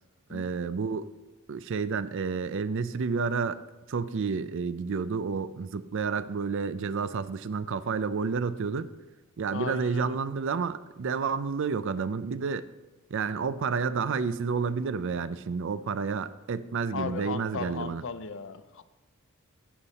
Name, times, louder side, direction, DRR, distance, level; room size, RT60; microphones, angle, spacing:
voice 1, 0.3-1.1 1.5-3.6 3.9-8.9 9.4-12.6 13.1-18.0, right 5 dB, 60° right, 15 dB, 0.4 m, -30 dB
voice 2, 9.5-10.2 16.9-18.8, left 5 dB, 60° left, 12 dB, 0.6 m, -36 dB
11.0 x 8.2 x 4.1 m, 1.2 s
head